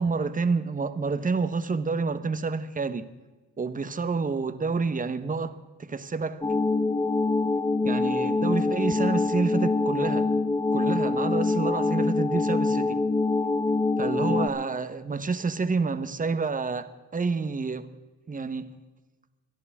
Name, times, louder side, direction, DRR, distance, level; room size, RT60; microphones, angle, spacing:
voice 1, 0.0-3.1 3.6-6.4 7.8-10.3 10.7-13.0 14.0-17.9 18.3-18.7, right 4 dB, 25° right, 1.2 m, -28 dB
sound 1, 6.4-14.5, left 3 dB, 15° left, 1.3 m, -25 dB
27.0 x 11.0 x 3.7 m
cardioid pair, 90°, 30 cm